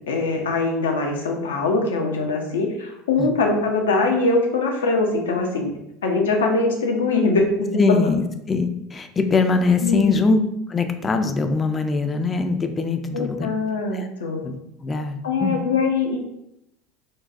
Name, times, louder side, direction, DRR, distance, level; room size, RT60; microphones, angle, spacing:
voice 1, 0.1-5.7 6.0-7.8 9.8-10.2 13.1-14.5 15.2-16.2, left 3 dB, 80° left, 2 dB, 0.5 m, -22 dB
voice 2, 7.8-10.4 10.7-13.5 13.9-14.1 14.4-15.6, left 4 dB, 25° left, 7 dB, 0.4 m, -22 dB
4.0 x 2.2 x 2.4 m, 0.82 s
hypercardioid pair, 75°, 0 cm